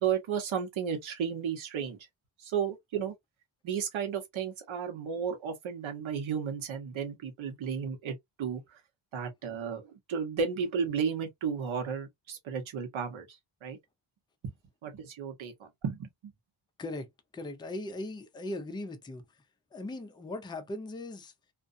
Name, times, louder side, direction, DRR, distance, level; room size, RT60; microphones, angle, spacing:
voice 1, 0.0-2.0 2.4-3.1 3.6-8.8 9.1-13.8 14.4-14.5 14.8-16.3, right 7 dB, 80° right, 1.1 m, -33 dB
voice 2, 16.8-19.4 19.7-21.3, left 2 dB, 10° left, 0.3 m, -39 dB
2.5 x 2.3 x 2.5 m
wide cardioid pair, 150°, 47 cm